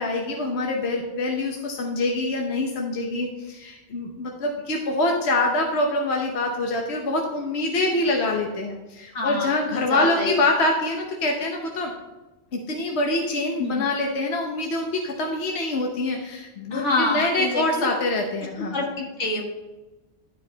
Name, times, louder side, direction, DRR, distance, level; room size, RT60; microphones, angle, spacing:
voice 1, 0.0-11.9 12.5-18.8, left 2 dB, 70° left, 1 dB, 1.2 m, -25 dB
voice 2, 9.1-10.4 13.6-13.8 16.7-17.9 18.7-19.4, left 2 dB, 85° left, 0 dB, 1.9 m, -26 dB
11.5 x 5.2 x 3.9 m, 1.1 s
omnidirectional pair, 1.2 m